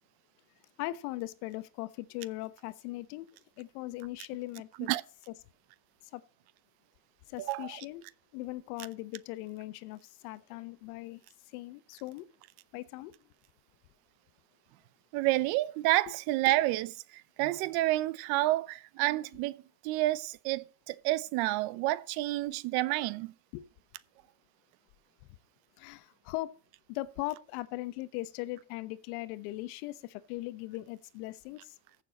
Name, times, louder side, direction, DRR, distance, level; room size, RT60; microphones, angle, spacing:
voice 1, 0.8-3.3 3.6-4.9 6.1-6.2 7.3-8.0 8.3-11.2 11.5-12.3 12.7-13.1 16.1-16.2 23.5-23.7 25.8-26.5 26.9-31.7, left 18 dB, 70° left, 1.0 m, -39 dB
voice 2, 7.4-7.7 15.1-17.0 17.4-19.6 19.8-23.3, right 17 dB, 55° right, 0.7 m, -29 dB
14.5 x 7.0 x 4.1 m
cardioid pair, 155°, 47 cm